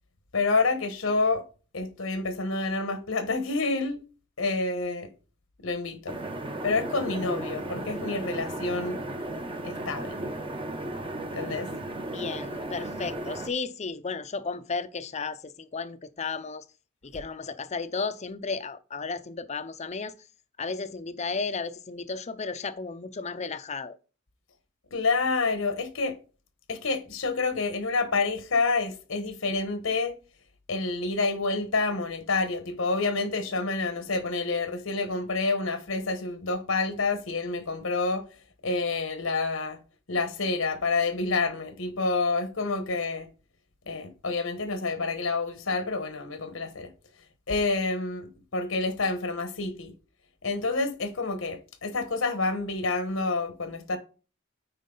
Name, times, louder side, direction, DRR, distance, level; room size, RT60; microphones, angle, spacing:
voice 1, 0.3-1.4 1.7-4.0 4.4-5.1 5.6-6.2 6.6-9.0 9.6-10.2 11.3-11.7 24.9-26.2 26.7-30.1 30.7-38.3 38.6-39.8 40.1-43.3 43.9-46.9 47.5-49.9 50.4-54.0, left 3 dB, 80° left, 1.2 m, -28 dB
sound 1, 6.1-13.5, right 1 dB, 25° right, 0.8 m, -35 dB
voice 2, 12.1-16.6 17.0-20.1 20.6-24.0, left 4 dB, 35° left, 0.6 m, -34 dB
9.3 x 4.6 x 3.9 m
head